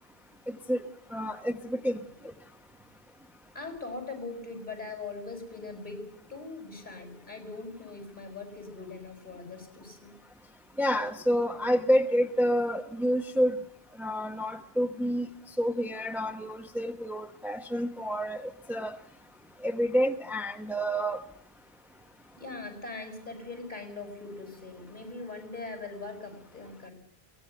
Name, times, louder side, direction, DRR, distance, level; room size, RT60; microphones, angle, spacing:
voice 1, 1.1-2.0 10.8-13.6 14.0-15.3 15.6-19.0 19.6-21.2, equal, ahead, 6 dB, 1.0 m, -28 dB
voice 2, 3.5-10.1 16.3-16.5 22.4-26.9, left 3 dB, 50° left, 5 dB, 6.4 m, -41 dB
23.5 x 18.0 x 8.0 m, 0.63 s
omnidirectional pair, 1.0 m